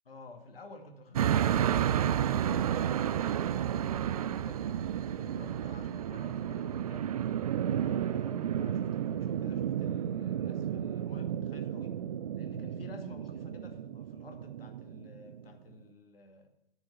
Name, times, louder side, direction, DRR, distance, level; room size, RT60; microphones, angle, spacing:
voice 1, 0.1-4.6 5.1-7.1 7.6-12.0 12.4-16.5, left 2 dB, 65° left, 4 dB, 2.2 m, -51 dB
sound 1, 1.2-15.4, right 10 dB, 40° right, 0.4 m, -32 dB
9.9 x 7.1 x 7.1 m, 0.89 s
figure-of-eight pair, 115°, 31 cm